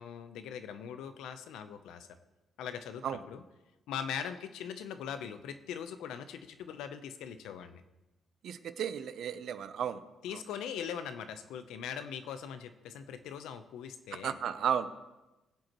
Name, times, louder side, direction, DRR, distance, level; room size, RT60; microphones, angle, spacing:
voice 1, 0.0-2.1 2.6-3.4 3.9-7.8 10.2-14.4, left 8 dB, 85° left, 9 dB, 0.7 m, -41 dB
voice 2, 8.4-10.0 10.3-10.4 14.1-14.9, right 8 dB, 70° right, 12 dB, 0.7 m, -34 dB
20.5 x 7.8 x 3.1 m, 1.0 s
cardioid pair, 90°, 0 cm